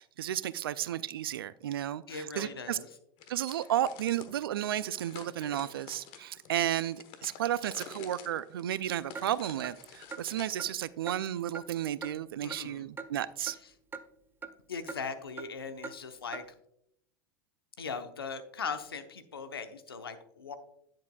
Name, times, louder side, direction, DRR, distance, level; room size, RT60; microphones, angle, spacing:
voice 1, 0.0-2.8 3.3-13.6, right 11 dB, 75° right, 18 dB, 0.4 m, -33 dB
voice 2, 2.1-2.9 12.4-12.8 14.7-16.4 17.8-20.6, left 5 dB, 85° left, 9 dB, 0.8 m, -39 dB
sound 1, 3.2-4.3 4.9-10.6, left 8 dB, 50° left, 1.1 m, -50 dB
Clock, 9.1-9.3 9.6-9.7 10.1-10.2 10.6-10.7 11.1-11.2 11.5-11.7 12.0-12.1 12.5-12.6 13.0-13.1 13.5-13.6 13.9-14.0 14.4-14.5 14.9-15.0 15.4-15.5 15.8-16.0 16.3-16.4, right 5 dB, 15° right, 0.5 m, -41 dB
10.5 x 7.4 x 2.3 m, 0.74 s
hypercardioid pair, 85°, 12 cm